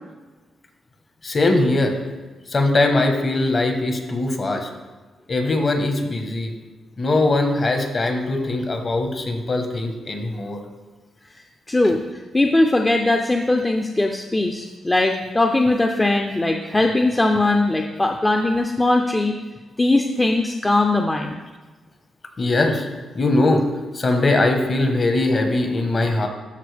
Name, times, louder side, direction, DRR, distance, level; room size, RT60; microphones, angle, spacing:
voice 1, 1.2-2.0 2.5-4.7 5.3-6.5 7.0-10.6 22.4-22.9 23.1-23.6 23.9-26.3, left 2 dB, 40° left, 5 dB, 1.2 m, -21 dB
voice 2, 11.7-12.0 12.3-19.3 19.8-21.4, left 2 dB, 20° left, 3 dB, 0.5 m, -20 dB
13.0 x 4.5 x 3.4 m, 1.3 s
cardioid pair, 95°, 0 cm